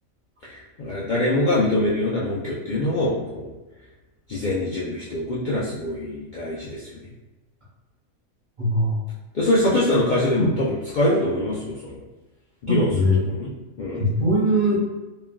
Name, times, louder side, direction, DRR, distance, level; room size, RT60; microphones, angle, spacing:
voice 1, 0.4-3.5 4.3-7.0 9.3-12.0 12.6-13.5 13.8-14.1, left 1 dB, 70° left, -7 dB, 0.4 m, -24 dB
voice 2, 8.6-8.9 10.4-10.5 12.7-13.2 14.0-14.8, equal, 40° right, -11 dB, 1.1 m, -21 dB
3.2 x 2.3 x 2.2 m, 1.1 s
omnidirectional pair, 1.4 m